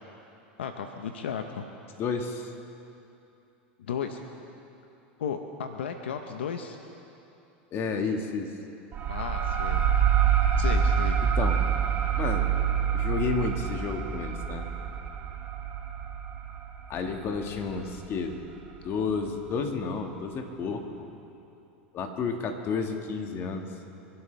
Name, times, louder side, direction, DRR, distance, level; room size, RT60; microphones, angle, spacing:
voice 1, 0.6-1.7 3.8-4.2 5.2-6.8 9.1-9.8 10.6-11.2 14.9-15.0, left 7 dB, 85° left, 6 dB, 0.9 m, -34 dB
voice 2, 2.0-2.5 7.7-8.5 11.2-11.6 12.2-12.5 12.9-14.7 16.9-18.4 18.8-21.1 21.9-23.6, left 5 dB, 40° left, 4 dB, 1.8 m, -31 dB
sound 1, 8.9-18.1, right 8 dB, 35° right, 1.4 m, -26 dB
27.5 x 12.0 x 3.4 m, 2.8 s
hypercardioid pair, 100°, 6 cm